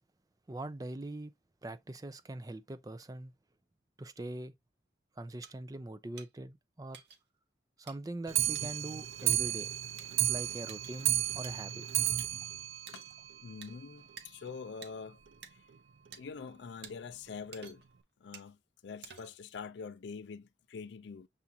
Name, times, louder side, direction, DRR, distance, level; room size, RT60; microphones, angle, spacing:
voice 1, 0.5-1.3 1.6-3.3 4.0-4.5 5.2-7.0 7.8-9.7 10.3-11.8, right 2 dB, 20° right, 0.4 m, -42 dB
sound 1, 5.4-5.5 6.2-6.3 6.9-7.2 7.9-8.0 8.5-8.7 9.3-9.4 10.0-10.1 10.7-11.0 11.4-11.5 12.2-12.3 12.9-13.1 13.6-13.7 14.2-14.3 14.8-14.9 15.4-15.5 16.1-16.2 16.8-16.9 17.5-17.9 18.3-18.5 19.0-19.4, right 7 dB, 65° right, 0.8 m, -50 dB
Clock, 8.3-13.8 14.1-14.2 14.5-14.6 14.9-15.0 15.3-15.4 16.1-16.2 16.9-17.0 17.6-17.7, right 12 dB, 85° right, 0.4 m, -33 dB
voice 2, 13.4-15.2 15.5-15.6 16.1-17.8 18.2-21.3, left 5 dB, 65° left, 0.4 m, -45 dB
7.0 x 2.4 x 2.6 m
head